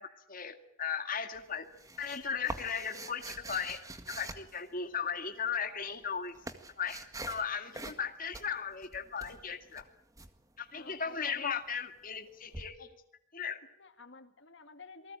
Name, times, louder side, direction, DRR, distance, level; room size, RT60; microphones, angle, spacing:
voice 1, 0.0-1.7 2.0-3.8 4.1-6.4 6.8-9.8 10.6-12.9 13.3-13.6, left 6 dB, 40° left, 6 dB, 2.1 m, -37 dB
sound 1, 1.3-5.2 5.9-7.5 7.7-8.1 8.3-10.3 12.5-12.6, right 2 dB, 15° right, 1.8 m, -45 dB
voice 2, 10.7-11.6 13.8-15.2, left 3 dB, 55° left, 7 dB, 2.0 m, -51 dB
28.0 x 19.5 x 9.0 m, 0.72 s
head